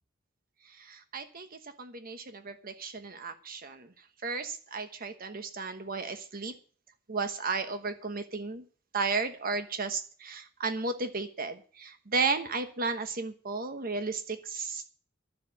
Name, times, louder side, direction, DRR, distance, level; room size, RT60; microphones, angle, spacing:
voice 1, 0.6-6.5 7.1-8.6 8.9-14.9, right 4 dB, 45° right, 8 dB, 1.2 m, -34 dB
12.0 x 7.6 x 8.6 m, 0.42 s
head